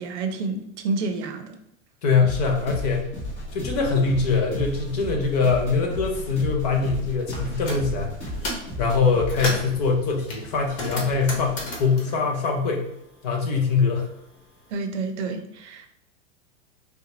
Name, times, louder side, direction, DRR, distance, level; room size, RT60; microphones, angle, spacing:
voice 1, 0.0-1.6 14.7-15.9, right 3 dB, 65° right, 6 dB, 0.6 m, -29 dB
voice 2, 2.0-3.1 3.5-8.1 8.8-12.8 13.2-14.1, left 4 dB, 35° left, 2 dB, 0.4 m, -23 dB
sound 1, 2.2-11.8, equal, 15° left, 1.0 m, -35 dB
sound 2, 7.3-7.8 8.2-8.7 9.1-9.8 10.3-13.2 13.5-14.6, left 1 dB, 55° left, 1.1 m, -34 dB
3.7 x 2.2 x 2.9 m, 0.78 s
supercardioid pair, 165°, 37 cm